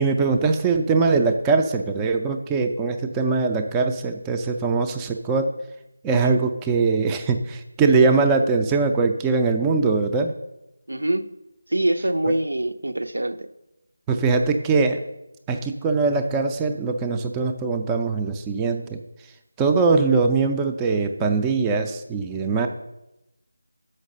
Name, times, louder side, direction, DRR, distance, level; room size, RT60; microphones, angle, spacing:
voice 1, 0.0-5.5 6.0-10.3 14.1-15.0 15.5-19.0 19.6-22.7, right 4 dB, 10° right, 0.4 m, -21 dB
voice 2, 10.9-11.3 11.7-13.5, right 1 dB, 75° right, 0.6 m, -24 dB
6.4 x 5.4 x 6.4 m
figure-of-eight pair, 160°, 0 cm